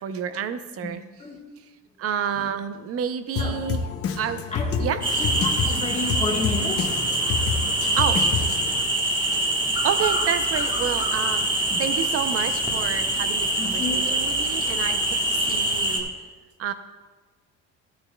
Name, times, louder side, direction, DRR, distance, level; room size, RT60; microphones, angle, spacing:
voice 1, 0.0-1.0 2.0-3.8 4.2-4.4 4.8-5.0 8.0-8.2 9.3-9.4 9.8-11.5 11.8-16.1 16.6-16.7, right 8 dB, 45° right, 11 dB, 0.6 m, -29 dB
Drum kit, 3.4-8.8, left 5 dB, 45° left, 0.7 m, -28 dB
voice 2, 4.5-4.9 5.2-7.0 13.6-14.2, left 3 dB, 20° left, 0 dB, 1.4 m, -30 dB
sound 1, 5.0-16.0, right 1 dB, 15° right, 1.2 m, -24 dB
13.5 x 9.3 x 2.2 m, 1.3 s
cardioid pair, 145°, 32 cm